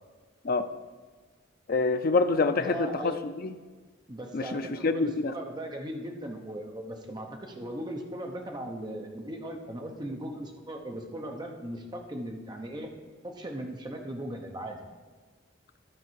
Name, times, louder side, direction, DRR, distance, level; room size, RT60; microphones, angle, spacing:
voice 1, 1.7-3.5 4.3-5.3, left 3 dB, 50° left, 9 dB, 0.5 m, -26 dB
voice 2, 2.6-3.2 4.1-12.9 13.2-14.8, right 1 dB, 20° right, 2 dB, 0.9 m, -38 dB
12.5 x 4.6 x 4.6 m, 1.4 s
head